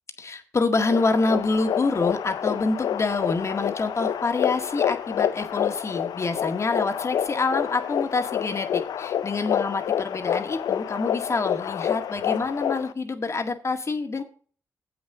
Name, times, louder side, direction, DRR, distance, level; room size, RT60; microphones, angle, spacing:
voice 1, 0.2-14.2, left 3 dB, 45° left, 6 dB, 1.8 m, -26 dB
sound 1, 0.7-12.9, left 9 dB, 80° left, 0.6 m, -28 dB
7.9 x 6.3 x 6.7 m, 0.41 s
cardioid pair, 60°, 7 cm